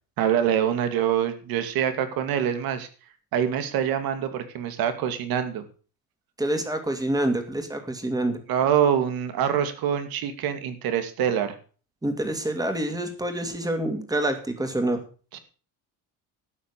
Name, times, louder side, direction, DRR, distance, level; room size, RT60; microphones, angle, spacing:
voice 1, 0.2-2.9 3.3-5.6 8.5-11.6 15.3-15.4, right 9 dB, 75° right, 10 dB, 2.4 m, -25 dB
voice 2, 6.4-8.4 12.0-15.0, right 1 dB, 10° right, 7 dB, 2.5 m, -27 dB
12.5 x 9.3 x 6.7 m, 0.39 s
cardioid pair, 145°, 36 cm